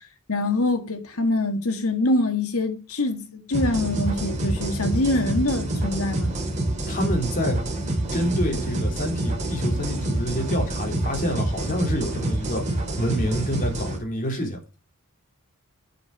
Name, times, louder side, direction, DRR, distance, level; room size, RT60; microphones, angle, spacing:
voice 1, 0.3-6.4, left 2 dB, 75° left, 1.8 m, -24 dB
sound 1, 3.5-14.0, right 1 dB, 35° right, 3.1 m, -27 dB
voice 2, 6.9-7.6 8.1-12.6 13.0-14.6, equal, 40° left, 3.3 m, -27 dB
9.0 x 7.1 x 4.9 m
head